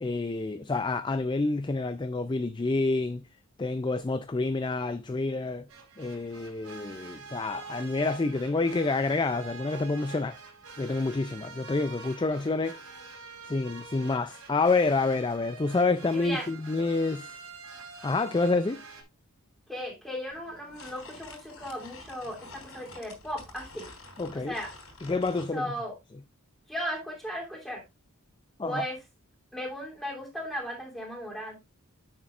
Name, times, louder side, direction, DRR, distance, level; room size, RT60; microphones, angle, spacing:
voice 1, 0.0-3.2 3.6-5.7 6.0-10.4 10.8-12.8 13.4-17.4 18.0-18.8 24.2-24.6 25.0-25.7 28.6-28.9, left 3 dB, 20° left, 0.4 m, -28 dB
sound 1, 5.7-19.0, right 4 dB, 75° right, 3.9 m, -46 dB
voice 2, 16.1-16.5 19.7-23.9 24.3-24.7 25.5-26.0 26.7-27.8 28.6-29.0 29.5-31.6, equal, ahead, 3.0 m, -36 dB
sound 2, 20.3-25.5, left 3 dB, 70° left, 3.4 m, -48 dB
10.0 x 7.4 x 2.5 m
head